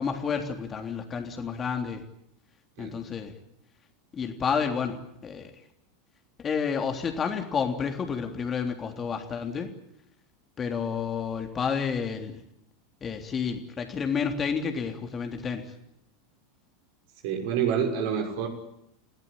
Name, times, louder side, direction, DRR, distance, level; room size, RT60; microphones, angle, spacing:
voice 1, 0.0-2.0 2.8-3.3 4.1-5.5 6.4-9.7 10.6-12.4 13.0-15.6, left 6 dB, 25° left, 4 dB, 3.4 m, -30 dB
voice 2, 17.2-18.5, right 7 dB, 55° right, 3 dB, 6.1 m, -27 dB
28.5 x 17.5 x 9.0 m, 0.77 s
figure-of-eight pair, 85°, 0 cm